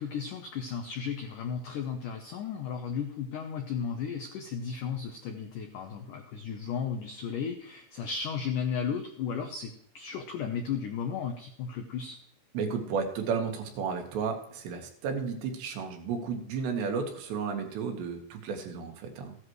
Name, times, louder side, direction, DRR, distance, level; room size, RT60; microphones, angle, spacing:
voice 1, 0.0-12.2, left 7 dB, 90° left, 4 dB, 1.8 m, -34 dB
voice 2, 12.6-19.4, right 5 dB, 80° right, 3 dB, 3.6 m, -33 dB
15.0 x 10.5 x 3.1 m, 0.68 s
omnidirectional pair, 5.0 m